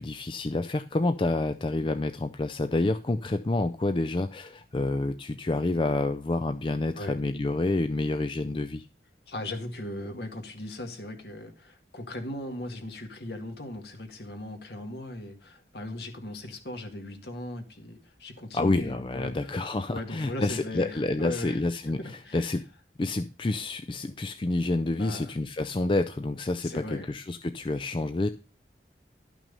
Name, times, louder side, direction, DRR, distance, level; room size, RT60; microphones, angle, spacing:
voice 1, 0.0-8.9 18.5-22.6 23.0-28.3, left 2 dB, 25° left, 9 dB, 0.4 m, -28 dB
voice 2, 9.3-19.6 19.9-21.6 22.0-22.5 25.0-25.3 26.6-27.1, left 1 dB, 65° left, 5 dB, 1.9 m, -38 dB
12.0 x 6.1 x 5.3 m, 0.36 s
head